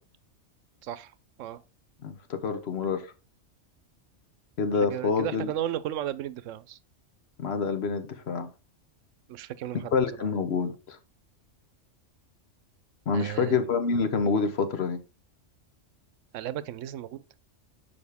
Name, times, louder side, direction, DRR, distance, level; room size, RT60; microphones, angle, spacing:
voice 1, 2.0-3.1 4.6-5.5 7.4-8.5 9.9-11.0 13.1-15.0, left 5 dB, 60° left, 1.1 m, -27 dB
voice 2, 4.8-6.8 9.3-10.3 13.1-13.6 16.3-17.2, right 11 dB, 90° right, 0.9 m, -35 dB
6.5 x 5.0 x 3.5 m
omnidirectional pair, 1.2 m